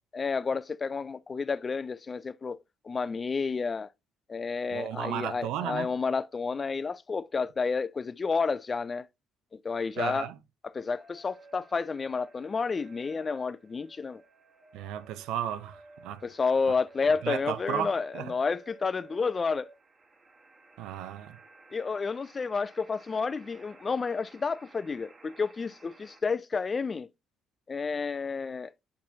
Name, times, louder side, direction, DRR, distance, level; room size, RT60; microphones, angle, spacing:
voice 1, 0.1-2.6 2.8-3.9 4.3-9.1 9.6-10.3 10.7-14.2 16.2-19.7 21.7-27.1 27.7-28.7, left 4 dB, 30° left, 0.3 m, -30 dB
voice 2, 4.7-5.9 10.0-10.4 14.7-16.2 16.6-16.7 17.2-18.3 20.8-21.4, right 10 dB, 80° right, 0.6 m, -34 dB
sound 1, 10.9-26.2, right 3 dB, 25° right, 1.3 m, -55 dB
8.4 x 4.3 x 2.7 m
cardioid pair, 100°, 0 cm